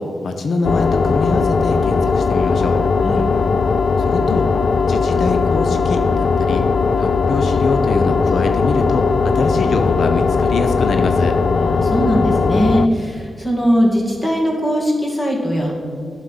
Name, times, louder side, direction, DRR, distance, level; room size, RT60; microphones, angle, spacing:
voice 1, 0.0-2.8 4.0-4.5 4.9-6.7 7.0-11.4, left 3 dB, 80° left, 6 dB, 0.7 m, -23 dB
sound 1, 0.6-12.9, left 4 dB, 60° left, 0.3 m, -18 dB
voice 2, 11.5-15.7, equal, 15° left, -1 dB, 1.9 m, -19 dB
11.5 x 6.4 x 5.6 m, 2.4 s
wide cardioid pair, 165°, 0 cm